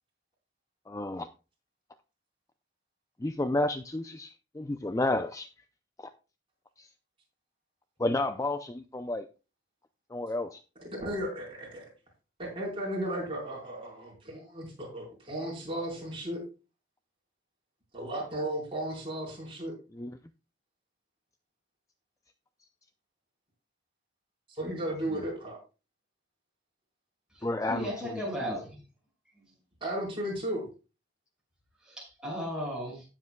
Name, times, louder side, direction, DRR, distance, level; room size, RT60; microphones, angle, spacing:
voice 1, 0.9-1.3 3.2-5.5 6.8-6.9 8.0-9.2 10.1-10.6 19.9-20.2 27.4-27.9, left 2 dB, 15° left, 9 dB, 0.4 m, -31 dB
voice 2, 10.8-11.8 12.4-16.4 17.9-19.7 24.6-25.6 29.8-30.6, right 1 dB, 25° right, -2 dB, 4.4 m, -35 dB
voice 3, 27.3-28.8 31.8-33.0, equal, 5° right, -3 dB, 5.7 m, -36 dB
17.5 x 7.4 x 2.2 m, 0.32 s
head